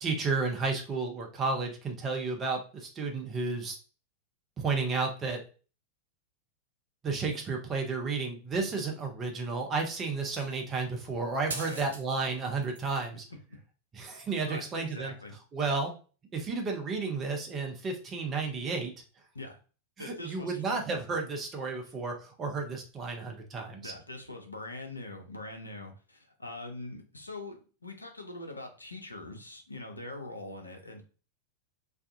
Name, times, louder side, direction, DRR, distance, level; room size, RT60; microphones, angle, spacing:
voice 1, 0.0-3.8 4.6-5.4 7.0-13.2 13.9-15.1 15.5-15.9 16.3-18.9 20.0-23.9, right 4 dB, 25° right, 2 dB, 0.7 m, -32 dB
sound 1, 10.2-10.7 11.5-12.0 12.3-13.0 14.0-14.1, right 3 dB, 65° right, 0.5 m, -41 dB
voice 2, 11.5-11.9 14.4-15.4 19.3-19.6 20.0-20.6 23.8-31.0, left 2 dB, 80° left, 2 dB, 0.6 m, -43 dB
2.5 x 2.3 x 2.5 m, 0.36 s
figure-of-eight pair, 90°, 0 cm